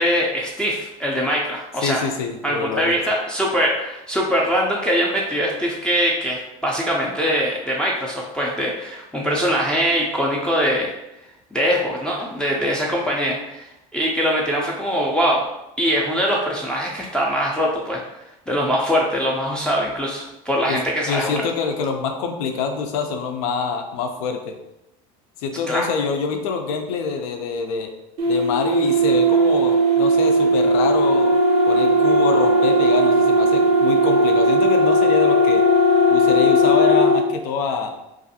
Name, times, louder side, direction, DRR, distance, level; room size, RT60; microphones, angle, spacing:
voice 1, 0.0-2.0 2.4-10.9 11.5-15.4 15.8-18.0 18.5-21.4 25.7-25.9, equal, 5° left, -3 dB, 0.4 m, -22 dB
voice 2, 1.8-2.9 20.7-20.8 21.0-24.5 25.4-27.9 28.3-31.3 31.7-35.7 36.1-37.9, left 5 dB, 85° left, 5 dB, 0.4 m, -25 dB
sound 1, 28.2-37.2, equal, 80° right, 0.7 m, -17 dB
2.6 x 2.4 x 2.6 m, 0.89 s
supercardioid pair, 110°, 18 cm